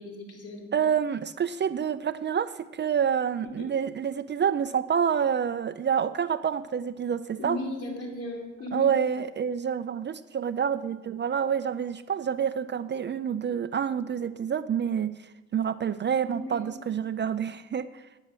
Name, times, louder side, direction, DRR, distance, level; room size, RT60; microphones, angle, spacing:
voice 1, 0.0-0.9 3.6-3.7 7.4-8.9 16.3-16.7, left 1 dB, 50° left, 1 dB, 3.2 m, -37 dB
voice 2, 0.7-7.6 8.7-18.0, right 7 dB, 35° right, 13 dB, 0.5 m, -28 dB
9.8 x 9.5 x 6.1 m, 1.1 s
cardioid pair, 90°, 30 cm